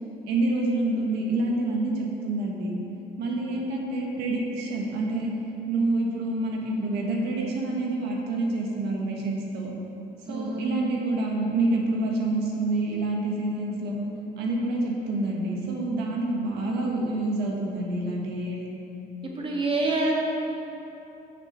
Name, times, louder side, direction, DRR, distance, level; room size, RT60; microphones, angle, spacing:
voice 1, 0.3-2.7 3.2-5.3 5.7-9.7 10.3-14.0 14.4-18.7, right 2 dB, 85° right, -1 dB, 1.4 m, -27 dB
voice 2, 10.3-10.8 19.2-20.1, right 2 dB, 30° right, -2 dB, 1.5 m, -27 dB
6.8 x 6.1 x 5.7 m, 2.9 s
cardioid pair, 110°, 17 cm